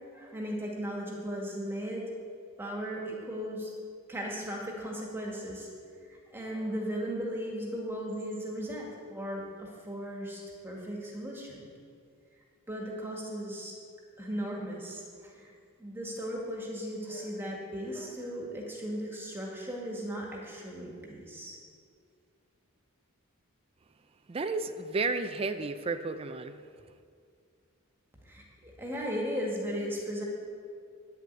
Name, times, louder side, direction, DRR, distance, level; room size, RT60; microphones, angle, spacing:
voice 1, 0.1-2.0 2.6-3.7 4.1-5.7 6.1-11.6 12.7-13.7 14.2-15.5 15.8-21.6 28.2-30.2, equal, 10° right, -2 dB, 2.0 m, -37 dB
voice 2, 24.3-26.6, right 3 dB, 25° right, 8 dB, 0.4 m, -32 dB
9.5 x 7.5 x 9.3 m, 2.3 s
head